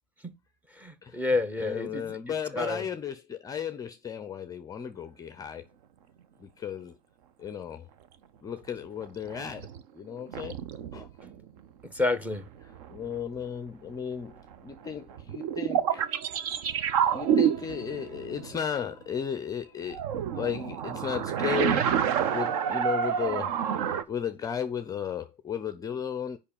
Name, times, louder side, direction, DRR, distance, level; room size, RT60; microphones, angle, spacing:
voice 1, 0.8-2.2 2.5-2.8 11.2-12.5, left 2 dB, 5° right, 0.8 m, -30 dB
voice 2, 1.6-5.7 6.4-6.9 7.4-7.9 8.4-10.6 10.9-11.1 12.6-16.1 17.1-20.0 20.3-21.9 22.3-23.6 23.8-26.4, left 8 dB, 15° left, 0.5 m, -35 dB
sound 1, 9.0-9.8 10.3-11.4 12.3-13.4 14.5-18.8 19.9-24.0, right 8 dB, 55° right, 0.8 m, -28 dB
6.6 x 5.2 x 7.1 m
hypercardioid pair, 110°, 21 cm